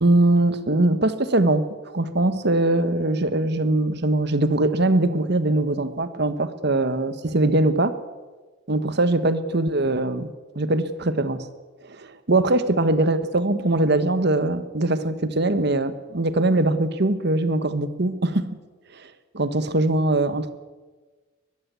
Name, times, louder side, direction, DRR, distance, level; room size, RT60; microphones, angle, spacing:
voice 1, 0.0-1.7 1.9-7.9 8.7-11.5 11.9-18.5 19.3-20.5, right 2 dB, 60° right, 12 dB, 1.3 m, -22 dB
22.0 x 14.5 x 8.3 m, 1.3 s
head